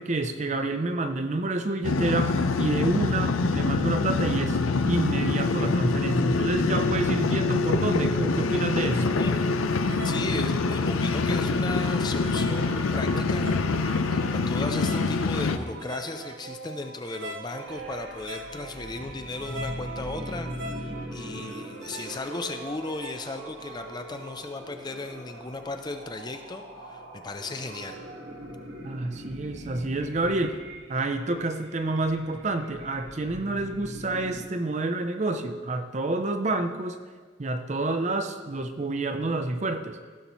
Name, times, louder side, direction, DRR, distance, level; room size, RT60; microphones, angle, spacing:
voice 1, 0.0-4.6 4.9-9.1 28.8-30.6 30.9-37.0 37.4-40.0, right 2 dB, 35° right, 8 dB, 0.5 m, -28 dB
Excavator Right To Left Long, 1.8-15.6, left 3 dB, 90° left, 0.5 m, -25 dB
voice 2, 8.8-9.3 10.0-20.5 21.1-28.0, left 2 dB, 20° left, 6 dB, 0.4 m, -36 dB
sound 1, 9.1-24.5, right 2 dB, 80° right, 0.9 m, -41 dB
sound 2, 17.6-34.4, equal, 65° right, 1.6 m, -42 dB
15.5 x 6.9 x 3.0 m, 1.5 s
head